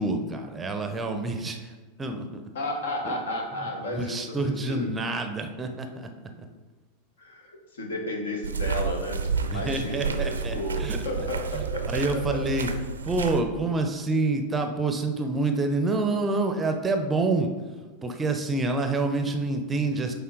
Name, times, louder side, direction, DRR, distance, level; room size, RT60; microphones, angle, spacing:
voice 1, 0.0-1.7 2.0-2.4 3.0-3.2 3.9-6.1 9.5-11.0 11.5-12.7 13.0-17.5 18.0-20.1, right 2 dB, 15° right, 5 dB, 0.6 m, -27 dB
voice 2, 2.5-4.9 7.2-12.8, left 1 dB, 65° left, 2 dB, 1.1 m, -33 dB
sound 1, 8.4-13.4, right 5 dB, 70° right, 0.5 m, -30 dB
8.7 x 3.5 x 3.7 m, 1.3 s
figure-of-eight pair, 90°, 0 cm